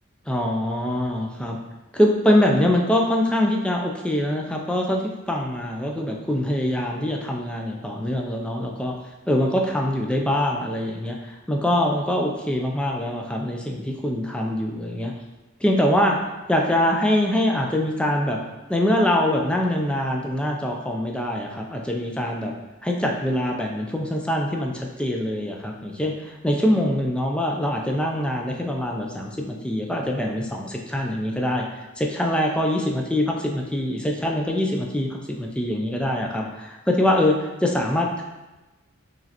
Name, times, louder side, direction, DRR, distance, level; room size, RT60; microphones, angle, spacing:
voice 1, 0.3-1.6 1.9-8.9 9.3-15.1 15.6-16.2 16.5-18.4 18.7-22.5 22.8-31.6 32.0-38.2, left 1 dB, 5° left, 0 dB, 0.3 m, -24 dB
4.7 x 3.1 x 2.9 m, 1.1 s
head